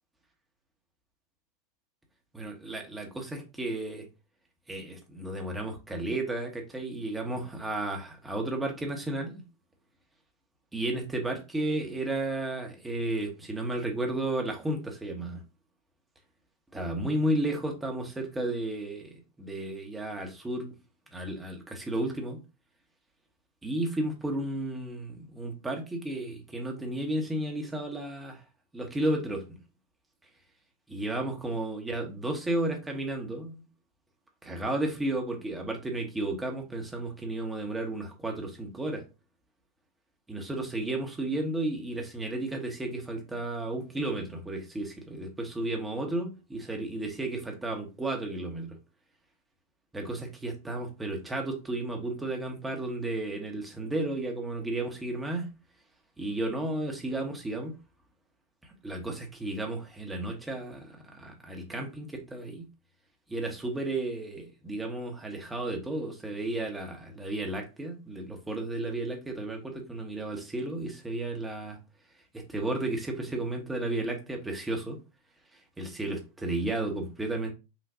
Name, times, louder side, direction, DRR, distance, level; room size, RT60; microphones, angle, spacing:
voice 1, 2.3-4.1 4.7-9.4 10.7-15.4 16.7-20.8 21.1-22.4 23.6-28.4 28.7-29.6 30.9-33.6 34.4-39.0 40.3-48.8 49.9-55.5 56.2-57.7 58.8-62.6 63.3-71.8 72.3-75.0 75.8-77.5, right 2 dB, 10° right, 1.1 m, -33 dB
6.0 x 2.5 x 2.7 m
figure-of-eight pair, 90°, 0 cm